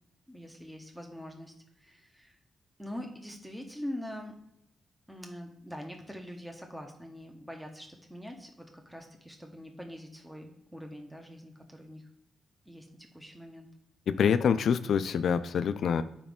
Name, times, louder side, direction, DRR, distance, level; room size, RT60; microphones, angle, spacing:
voice 1, 0.3-2.4 2.8-4.3 5.1-12.0 12.7-12.9 13.1-13.7, equal, 5° right, 2 dB, 1.1 m, -43 dB
voice 2, 14.1-16.0, left 7 dB, 70° left, 11 dB, 0.3 m, -26 dB
7.1 x 5.0 x 3.6 m, 0.80 s
supercardioid pair, 55°, 0 cm